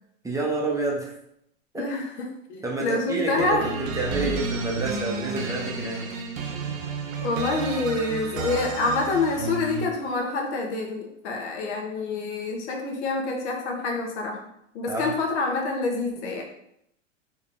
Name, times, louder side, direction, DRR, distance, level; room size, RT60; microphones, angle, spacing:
voice 1, 0.2-1.1 1.7-1.8 2.6-3.7 4.0-6.0 14.9-15.1, right 3 dB, 10° right, -2 dB, 0.8 m, -28 dB
voice 2, 1.7-3.9 7.2-14.5 14.7-16.4, left 3 dB, 60° left, 1 dB, 1.3 m, -27 dB
sound 1, 3.4-10.1, right 4 dB, 90° right, 0.8 m, -31 dB
4.3 x 3.1 x 3.8 m, 0.76 s
hypercardioid pair, 115°, 39 cm